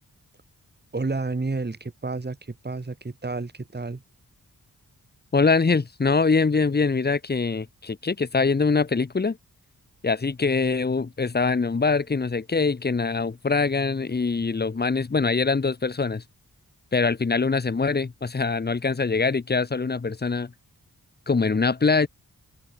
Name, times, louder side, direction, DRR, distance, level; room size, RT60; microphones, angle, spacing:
voice 1, 0.9-4.0, right 3 dB, 30° right, 3.3 m, -30 dB
voice 2, 5.3-9.4 10.0-16.2 16.9-20.5 21.3-22.1, left 4 dB, 30° left, 1.0 m, -23 dB
wide cardioid pair, 95°, 35 cm